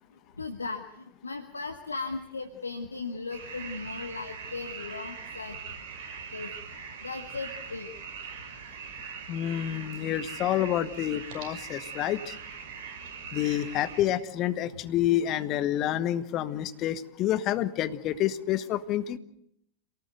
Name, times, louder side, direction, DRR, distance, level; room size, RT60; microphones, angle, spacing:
voice 1, 0.4-0.8 1.2-5.6 6.3-6.5 7.0-7.9, left 4 dB, 80° left, 7 dB, 1.6 m, -37 dB
sound 1, 3.3-14.0, right 6 dB, 50° right, 5.6 m, -41 dB
voice 2, 9.3-12.4 13.3-19.2, left 12 dB, 35° left, 12 dB, 1.4 m, -28 dB
27.5 x 18.5 x 7.9 m, 0.72 s
figure-of-eight pair, 90°, 0 cm